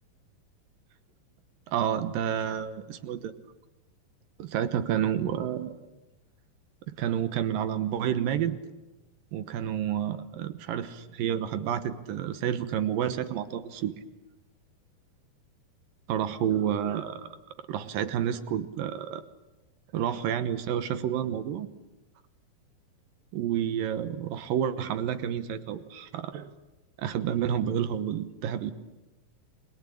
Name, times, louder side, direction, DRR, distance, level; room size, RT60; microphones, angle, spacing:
voice 1, 1.7-3.3 4.4-5.8 7.0-8.6 9.3-13.9 16.1-17.3 17.7-19.2 19.9-21.7 23.3-26.5 27.0-28.7, right 9 dB, 70° right, 11 dB, 2.6 m, -29 dB
30.0 x 22.0 x 8.6 m, 1.1 s
omnidirectional pair, 4.5 m